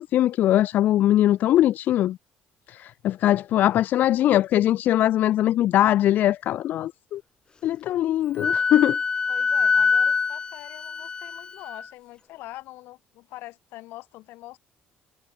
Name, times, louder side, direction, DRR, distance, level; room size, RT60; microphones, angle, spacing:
voice 1, 0.0-2.2 2.7-7.2 7.6-9.0, left 13 dB, 60° left, 0.4 m, -21 dB
Wind instrument woodwind instrument, 8.4-11.8, left 5 dB, 25° left, 0.7 m, -24 dB
voice 2, 9.3-14.6, left 18 dB, 80° left, 2.8 m, -43 dB
cardioid pair, 130°, 4 cm